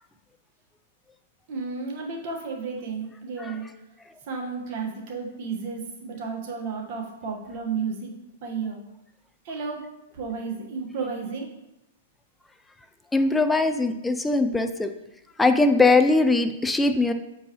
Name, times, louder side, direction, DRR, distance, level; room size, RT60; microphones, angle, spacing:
voice 1, 1.5-3.7 4.3-8.8 9.4-11.5, right 5 dB, 50° right, 0 dB, 1.5 m, -33 dB
voice 2, 13.1-14.9 15.4-17.1, left 3 dB, 5° left, 7 dB, 0.4 m, -20 dB
7.0 x 4.6 x 3.1 m, 0.89 s
hypercardioid pair, 135°, 0 cm